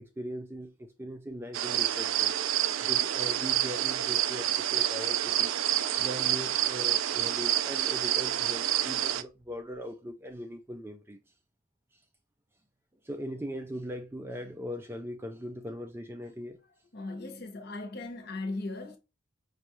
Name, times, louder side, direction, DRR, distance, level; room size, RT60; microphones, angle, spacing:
voice 1, 0.0-2.3 2.8-5.5 6.0-11.2 13.0-16.6, equal, 10° right, 0.3 m, -40 dB
sound 1, 1.5-9.2, right 12 dB, 85° right, 0.4 m, -28 dB
voice 2, 16.9-19.0, left 2 dB, 50° left, 0.8 m, -37 dB
5.1 x 2.3 x 2.9 m
head